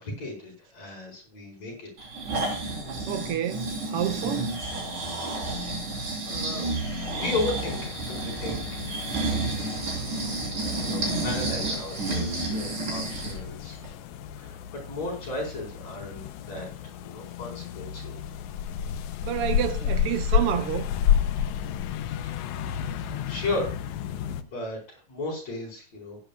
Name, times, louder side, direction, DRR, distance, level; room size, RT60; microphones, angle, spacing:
voice 1, 0.0-1.9 5.5-6.0 6.3-6.7 7.2-9.9 10.5-13.8 14.4-14.6 14.9-18.2 22.2-22.6 22.9-23.8 24.4-26.2, left 2 dB, 65° left, 5.7 m, -35 dB
Breathing, 2.0-13.4 13.8-13.9, right 2 dB, 85° right, 5.7 m, -30 dB
voice 2, 3.1-4.5 19.2-20.9, right 10 dB, 70° right, 1.5 m, -29 dB
sound 1, 7.0-24.4, left 8 dB, 80° left, 2.1 m, -31 dB
15.5 x 10.5 x 2.4 m
omnidirectional pair, 3.3 m